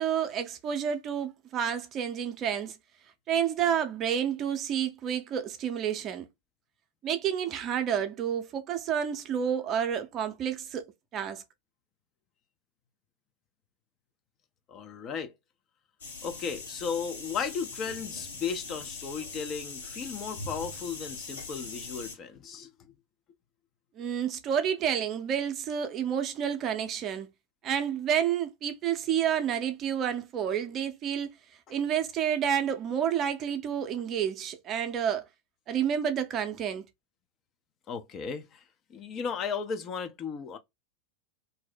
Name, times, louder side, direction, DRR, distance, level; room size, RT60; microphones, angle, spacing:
voice 1, 0.0-2.8 3.3-6.3 7.0-10.9 11.1-11.4 24.0-27.3 27.6-31.3 31.7-35.2 35.7-36.9, right 8 dB, 30° right, 0.5 m, -29 dB
voice 2, 14.7-15.3 16.2-22.7 37.9-38.6 38.9-40.6, left 6 dB, 30° left, 0.5 m, -35 dB
sound 1, 16.0-22.1, left 3 dB, 70° left, 1.4 m, -41 dB
2.6 x 2.0 x 3.9 m
figure-of-eight pair, 90°, 0 cm